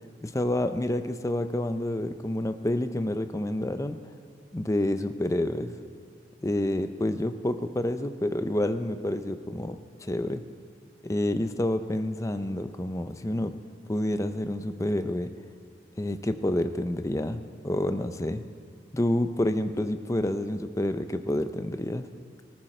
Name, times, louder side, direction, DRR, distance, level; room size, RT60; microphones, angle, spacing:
voice 1, 0.2-4.0 4.5-5.8 6.4-10.4 11.0-13.5 13.9-15.3 16.0-18.4 18.9-22.1, left 1 dB, 20° left, 9 dB, 0.6 m, -28 dB
18.5 x 14.0 x 4.4 m, 2.3 s
head